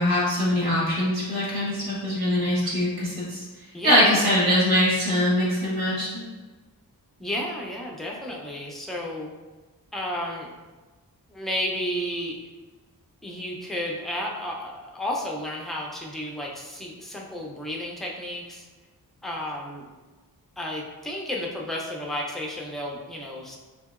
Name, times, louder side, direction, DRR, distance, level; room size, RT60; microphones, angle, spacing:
voice 1, 0.0-3.4 3.8-6.3, left 1 dB, 85° right, -7 dB, 1.1 m, -22 dB
voice 2, 3.7-4.4 7.2-9.3 9.9-10.5 11.3-12.4 13.2-18.7 19.2-19.9 20.6-23.6, left 1 dB, ahead, -2 dB, 0.3 m, -32 dB
2.8 x 2.7 x 2.3 m, 1.3 s
wide cardioid pair, 135°, 37 cm